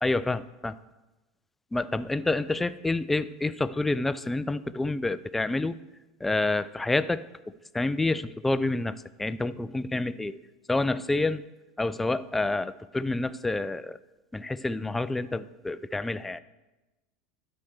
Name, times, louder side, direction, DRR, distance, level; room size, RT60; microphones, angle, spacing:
voice 1, 0.0-0.8 1.7-5.8 6.2-7.3 7.7-10.3 10.7-11.4 11.8-14.0 14.3-16.4, left 2 dB, 10° left, 14 dB, 0.4 m, -28 dB
11.5 x 4.4 x 6.4 m, 1.1 s
figure-of-eight pair, 75°, 2 cm